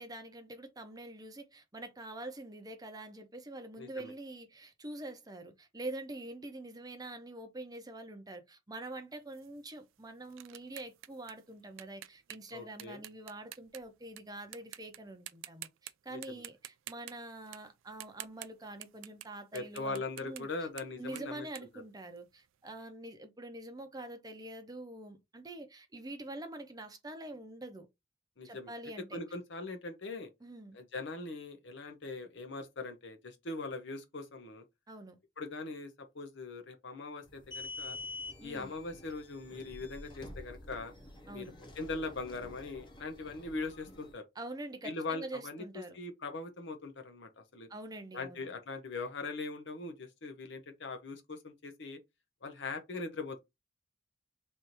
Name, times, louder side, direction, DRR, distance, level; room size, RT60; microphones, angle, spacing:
voice 1, 0.0-20.5 21.0-27.9 28.4-29.2 30.4-30.8 34.9-35.2 38.4-38.7 41.3-41.6 44.3-46.0 47.7-48.5, right 2 dB, 20° right, 0.7 m, -45 dB
voice 2, 3.8-4.1 12.5-13.0 16.1-16.2 19.5-21.4 28.4-28.7 29.1-30.3 30.7-34.6 35.4-38.0 38.4-40.9 41.3-44.2 44.8-45.6 45.9-47.7 48.1-52.0 52.4-53.4, left 3 dB, 65° left, 0.9 m, -41 dB
sound 1, 9.3-14.2 14.5-15.0 15.3-15.9 16.2-19.3 19.5-22.6, right 14 dB, 80° right, 0.4 m, -49 dB
sound 2, 37.2-44.1, left 2 dB, 25° left, 1.0 m, -48 dB
3.4 x 2.6 x 4.4 m
head